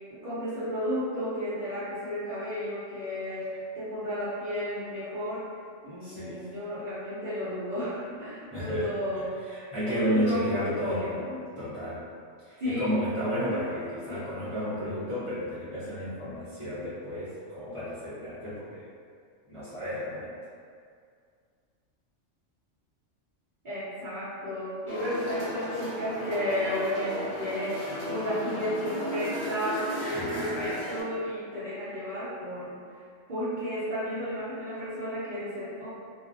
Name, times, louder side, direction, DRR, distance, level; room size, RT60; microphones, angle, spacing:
voice 1, 0.1-5.5 5.8-9.3 9.8-11.4 12.6-13.0 14.1-14.2 23.6-32.8 33.3-35.9, equal, 50° right, -13 dB, 0.7 m, -33 dB
voice 2, 6.0-6.4 8.5-8.9 9.1-11.2 11.6-12.0 12.4-18.8 19.5-20.3 30.1-30.7, equal, 35° left, -15 dB, 0.6 m, -32 dB
sound 1, 24.9-31.0, equal, 75° left, 1.0 m, -35 dB
2.4 x 2.1 x 2.5 m, 2.2 s
omnidirectional pair, 1.2 m